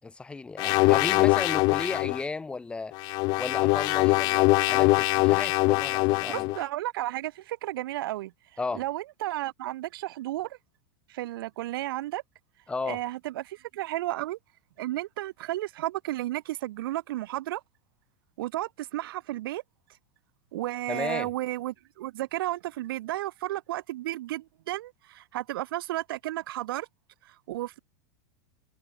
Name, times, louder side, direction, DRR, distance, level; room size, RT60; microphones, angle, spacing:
voice 1, 0.0-2.9 3.4-6.5 8.6-8.8 12.7-13.0 20.9-21.3, left 3 dB, 10° left, 4.4 m, -34 dB
sound 1, 0.6-2.2 2.9-6.6, left 25 dB, 35° left, 0.5 m, -23 dB
voice 2, 6.3-8.3 8.7-10.6 11.1-12.2 12.8-14.4 14.8-17.6 18.4-19.6 20.5-26.9 27.2-27.8, right 15 dB, 70° right, 1.6 m, -33 dB
supercardioid pair, 165°, 12 cm